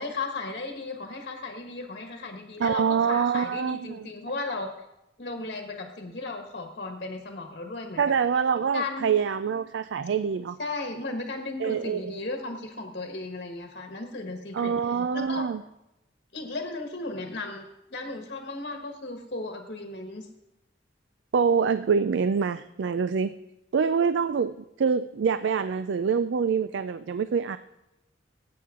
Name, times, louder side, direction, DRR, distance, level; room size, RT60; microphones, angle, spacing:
voice 1, 0.0-4.7 5.2-8.0 8.7-9.1 10.6-14.7 15.1-15.4 16.3-17.6 17.9-20.3, left 3 dB, 55° left, 3 dB, 1.4 m, -35 dB
voice 2, 2.6-4.1 8.0-10.6 11.6-12.2 14.5-15.6 21.3-23.3 23.7-27.6, right 6 dB, 75° right, 13 dB, 0.4 m, -25 dB
19.5 x 8.6 x 3.7 m, 0.93 s
head